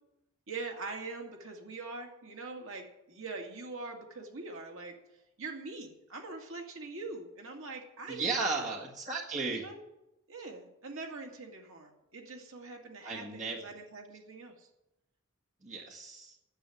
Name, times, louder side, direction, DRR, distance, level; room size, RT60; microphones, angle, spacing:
voice 1, 0.5-4.9 5.4-8.7 9.5-9.8 10.3-14.7, right 3 dB, 65° right, 2 dB, 2.1 m, -43 dB
voice 2, 8.1-9.7 13.0-13.6 15.6-16.4, right 3 dB, 35° right, -1 dB, 1.8 m, -35 dB
10.0 x 8.5 x 9.7 m, 0.91 s
head